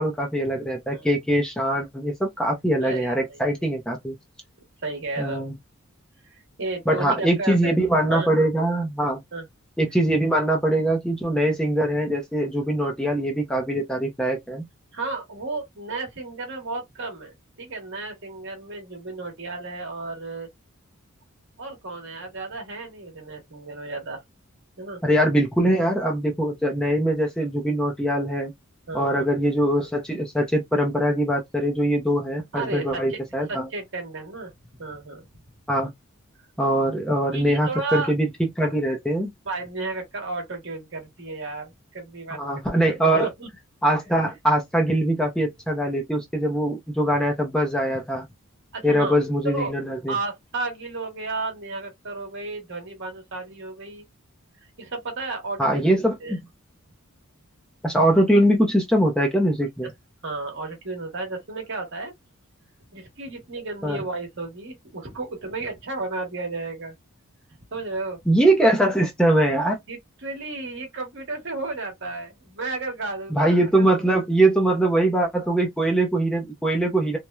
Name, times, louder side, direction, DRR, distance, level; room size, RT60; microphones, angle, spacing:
voice 1, 0.0-4.2 5.2-5.5 6.9-9.2 9.8-14.6 25.0-28.5 28.9-33.7 35.7-35.9 36.6-39.3 42.3-43.3 43.8-48.3 48.8-50.2 55.6-56.4 57.8-59.9 63.8-64.0 68.3-69.8 73.3-77.2, right 1 dB, 5° left, 0.5 m, -22 dB
voice 2, 2.8-3.4 4.8-5.4 6.2-7.8 8.1-8.3 9.3-9.5 14.9-20.5 21.6-24.2 24.8-25.0 28.9-29.3 32.5-33.2 33.5-34.5 34.8-35.3 37.3-38.1 39.4-42.4 42.8-43.5 48.7-49.2 49.4-49.7 50.1-54.0 54.8-55.9 56.2-56.3 60.2-62.1 62.9-66.9 67.7-68.2 69.9-73.9, right 3 dB, 55° right, 1.0 m, -33 dB
3.0 x 2.0 x 2.2 m
head